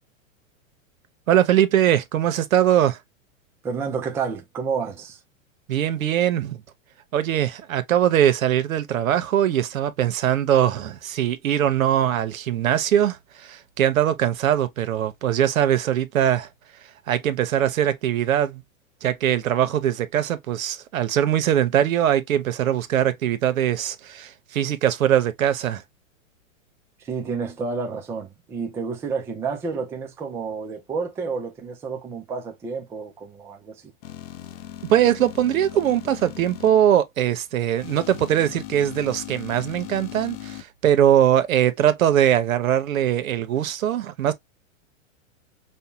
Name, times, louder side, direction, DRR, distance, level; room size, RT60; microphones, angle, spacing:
voice 1, 1.3-3.0 5.7-6.6 7.1-16.5 17.1-18.6 19.0-25.8 34.9-44.3, right 10 dB, 85° right, 0.9 m, -21 dB
voice 2, 3.6-5.2 27.0-33.9, right 5 dB, 5° right, 0.4 m, -30 dB
sound 1, 34.0-36.7 37.8-40.6, left 14 dB, 45° left, 0.7 m, -38 dB
5.4 x 2.2 x 2.7 m
hypercardioid pair, 135°, 40 cm